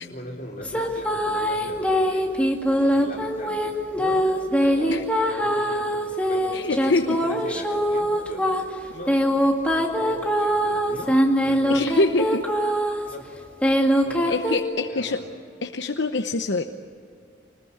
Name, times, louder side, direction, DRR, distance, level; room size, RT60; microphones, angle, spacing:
voice 1, 0.0-2.3 2.8-4.3 4.6-5.0 5.2-8.5 8.9-9.2 9.6-12.0 13.1-13.2 14.0-14.4 14.8-15.2, left 1 dB, 45° left, -2 dB, 4.8 m, -39 dB
sound 1, 0.6-13.1 13.6-14.6, equal, 5° left, 2.1 m, -23 dB
voice 2, 6.5-7.2 11.7-12.4 14.3-15.2 15.6-16.6, left 3 dB, 75° left, 5 dB, 0.9 m, -24 dB
25.5 x 20.5 x 8.7 m, 2.3 s
head